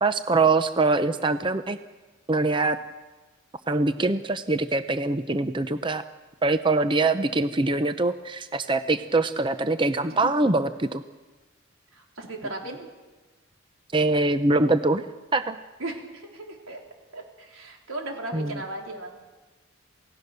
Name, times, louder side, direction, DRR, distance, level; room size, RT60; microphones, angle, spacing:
voice 1, 0.0-1.8 2.3-2.8 3.7-6.0 6.4-11.0 13.9-15.1 15.3-15.6 18.3-18.5, right 3 dB, 25° right, 10 dB, 0.6 m, -23 dB
voice 2, 10.1-10.5 11.9-12.9 15.8-16.8 17.1-19.2, right 2 dB, 90° right, 1 dB, 4.1 m, -37 dB
28.5 x 17.5 x 6.8 m, 1.2 s
head